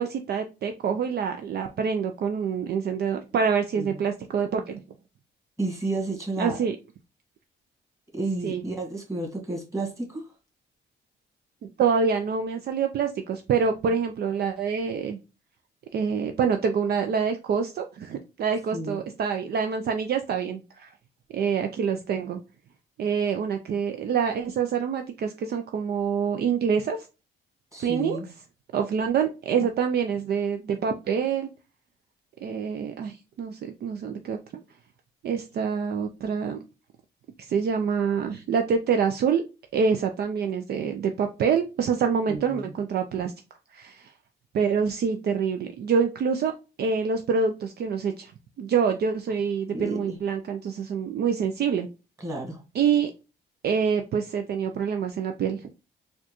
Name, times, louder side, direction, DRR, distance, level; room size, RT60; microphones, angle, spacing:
voice 1, 0.0-4.8 6.4-6.8 8.4-8.6 11.8-15.2 15.9-20.9 21.3-22.4 23.0-27.0 27.8-28.2 28.7-31.5 32.4-34.4 35.2-36.6 37.5-39.4 39.7-43.3 43.7-44.1 44.5-46.5 46.8-48.3 48.6-51.9 52.7-53.1 53.6-55.7, right 6 dB, 55° right, 0.4 m, -26 dB
voice 2, 5.6-6.6 8.1-10.3 18.7-19.0 27.7-28.3 42.3-42.7 49.7-50.2 52.2-52.6, right 2 dB, 15° right, 1.7 m, -31 dB
4.3 x 2.3 x 2.9 m
cardioid pair, 90°, 20 cm